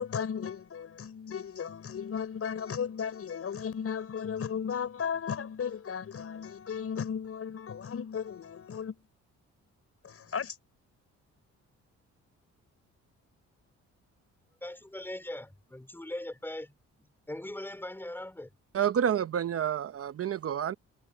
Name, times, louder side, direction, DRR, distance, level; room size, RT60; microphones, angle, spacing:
voice 1, 0.0-9.0 10.0-10.6, left 7 dB, 50° left, 5.8 m, -35 dB
voice 2, 14.6-16.7 17.3-18.5, left 1 dB, 5° left, 3.9 m, -40 dB
voice 3, 18.7-20.7, right 9 dB, 50° right, 0.9 m, -29 dB
cardioid pair, 90°, 30 cm